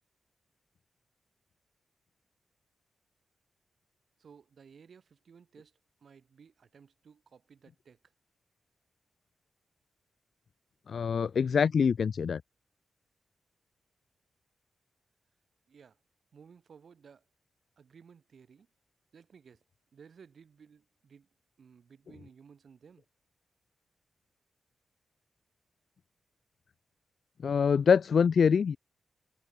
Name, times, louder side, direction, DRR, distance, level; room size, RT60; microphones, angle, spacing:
voice 1, 4.2-8.1 15.7-16.0 16.3-17.2 17.8-18.7 19.1-19.6 19.9-21.3 21.6-23.0, right 6 dB, 60° right, 7.7 m, -57 dB
voice 2, 10.9-12.4 27.4-28.8, left 6 dB, 60° left, 0.8 m, -25 dB
wide cardioid pair, 145°, 0 cm